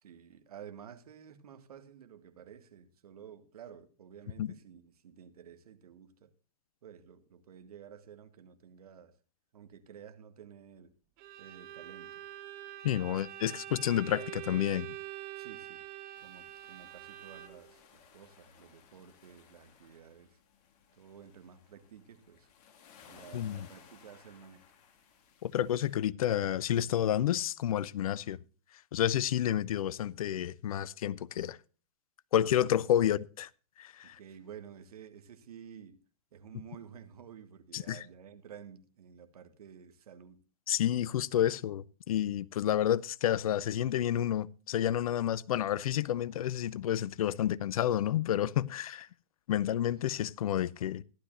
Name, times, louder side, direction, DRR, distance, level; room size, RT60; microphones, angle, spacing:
voice 1, 0.0-6.3 6.8-9.2 9.5-10.9 11.4-12.2 13.1-13.2 13.7-13.8 15.4-15.8 16.2-20.4 21.0-22.5 23.1-24.6 33.0-33.1 34.0-36.0 36.3-40.4, right 8 dB, 65° right, 1.8 m, -52 dB
Bowed string instrument, 11.2-17.8, right 14 dB, 35° right, 1.3 m, -45 dB
voice 2, 12.8-14.9 23.3-23.7 25.4-28.4 28.9-31.6 32.3-33.5 33.8-34.2 37.7-38.0 40.7-49.1 49.5-51.0, left 11 dB, 60° left, 0.6 m, -30 dB
sound 1, 16.1-26.0, left 7 dB, 35° left, 2.1 m, -60 dB
15.0 x 11.5 x 2.5 m
hypercardioid pair, 120°, 21 cm